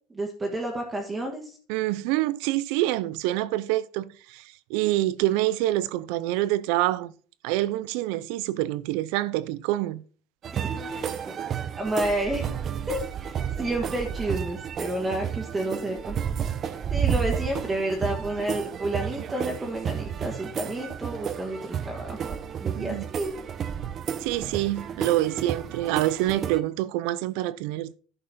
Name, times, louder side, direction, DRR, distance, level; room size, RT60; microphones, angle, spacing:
voice 1, 0.1-1.6 10.6-11.3 11.7-12.4 12.9-16.2 16.9-23.4, right 1 dB, 15° right, 1.6 m, -30 dB
voice 2, 1.7-4.4 4.7-7.1 7.4-10.0 22.8-23.0 23.8-23.9 24.2-27.9, right 16 dB, 75° right, 0.5 m, -26 dB
sound 1, 10.4-26.6, right 8 dB, 40° right, 0.7 m, -32 dB
11.0 x 5.5 x 4.2 m
supercardioid pair, 125°, 0 cm